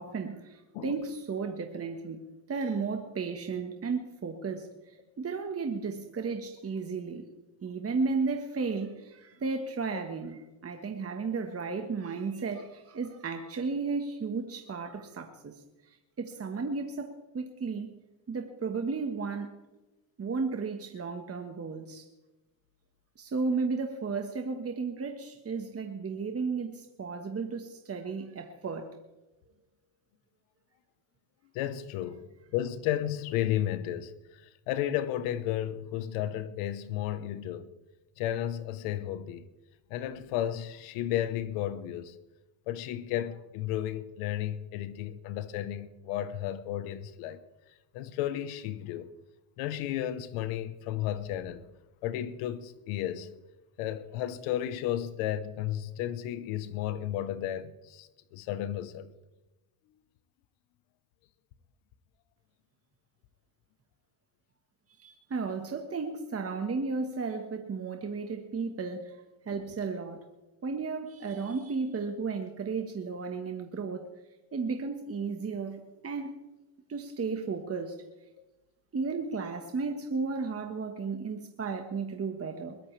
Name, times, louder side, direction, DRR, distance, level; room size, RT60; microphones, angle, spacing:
voice 1, 0.0-2.2 2.5-7.2 7.6-17.9 18.3-19.5 20.2-22.1 23.2-28.9 65.0-70.2 70.6-74.0 74.5-76.4 76.9-78.0 78.9-82.8, right 4 dB, 30° right, 1.5 m, -34 dB
voice 2, 31.5-34.1 34.7-37.7 38.2-39.4 39.9-42.1 42.7-47.4 47.9-49.1 49.6-51.6 52.0-53.3 53.8-59.1, left 12 dB, 85° left, 1.2 m, -33 dB
22.0 x 16.5 x 3.4 m
supercardioid pair, 95°, 50 cm